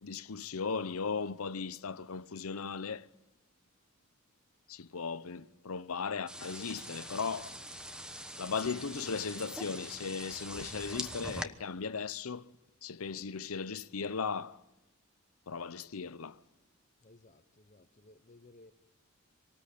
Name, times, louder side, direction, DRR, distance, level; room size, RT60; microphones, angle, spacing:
voice 1, 0.0-3.1 4.7-7.6 8.4-12.5 12.8-14.6 15.5-16.4, left 5 dB, 85° left, 0.8 m, -37 dB
sound 1, 6.3-11.4, equal, 5° right, 1.1 m, -43 dB
voice 2, 17.0-18.7, left 2 dB, 35° left, 0.8 m, -59 dB
25.5 x 19.0 x 8.4 m
head